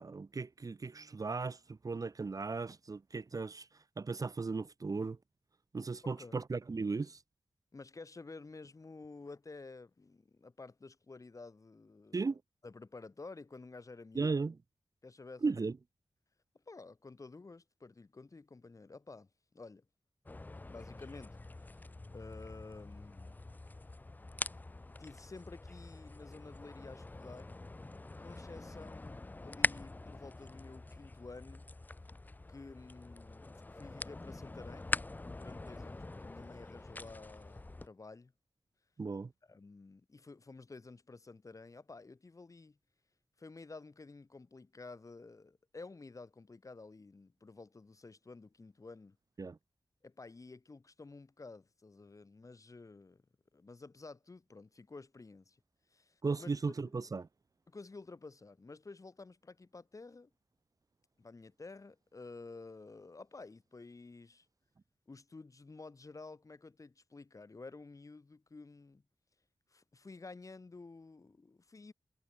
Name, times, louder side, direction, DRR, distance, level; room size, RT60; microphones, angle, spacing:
voice 1, 0.0-3.7 4.0-5.2 5.7-7.2 12.1-12.4 14.2-14.5 15.4-15.7 39.0-39.3 49.4-49.6 56.2-57.3, right 4 dB, 45° right, 0.7 m, -36 dB
voice 2, 6.0-6.4 7.7-12.2 12.6-14.4 15.0-15.7 16.7-19.8 20.7-23.4 25.0-27.6 28.2-31.7 32.5-34.9 35.3-38.3 39.4-42.8 43.4-49.2 50.0-53.2 53.5-55.6 55.9-57.0 57.7-60.3 61.2-64.5 65.1-69.0 69.7-71.9, left 3 dB, 40° left, 1.2 m, -52 dB
sound 1, 20.3-37.9, left 2 dB, 20° left, 0.5 m, -43 dB
wide cardioid pair, 85°, 9 cm